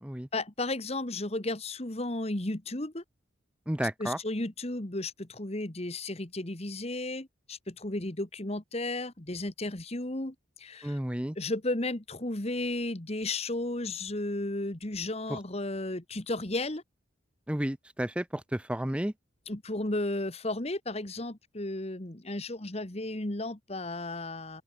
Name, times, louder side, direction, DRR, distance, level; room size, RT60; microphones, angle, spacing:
voice 1, 0.3-3.0 3.8-11.0 11.4-16.8 19.5-24.6, left 2 dB, 35° left, 1.6 m, -34 dB
voice 2, 3.7-4.2 10.8-11.4 15.3-15.4 17.5-19.1, right 1 dB, 5° right, 0.6 m, -32 dB
open air
head